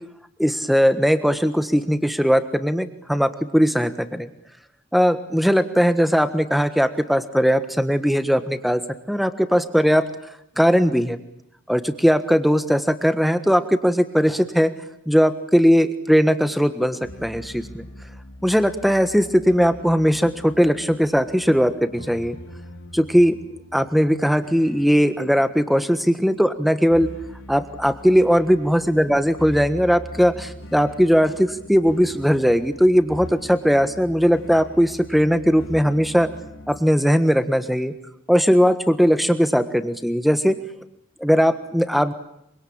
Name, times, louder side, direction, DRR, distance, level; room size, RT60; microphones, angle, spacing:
voice 1, 0.4-4.3 4.9-8.8 9.1-10.0 10.6-11.2 11.7-14.7 15.1-17.9 18.4-22.4 22.9-23.3 23.7-27.1 27.5-36.3 36.7-37.9 38.3-40.6 41.2-42.1, equal, ahead, 10 dB, 1.4 m, -19 dB
sound 1, 17.0-36.8, equal, 90° left, 5.6 m, -42 dB
25.5 x 25.0 x 8.8 m, 0.78 s
head